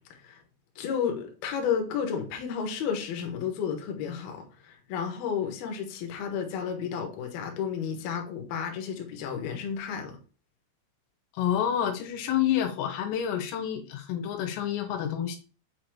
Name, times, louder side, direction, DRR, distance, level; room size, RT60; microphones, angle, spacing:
voice 1, 0.1-0.4 0.8-10.1, left 7 dB, 70° left, 2.4 m, -32 dB
voice 2, 11.4-15.4, left 10 dB, 90° left, 3.6 m, -28 dB
7.7 x 2.7 x 4.5 m
omnidirectional pair, 5.8 m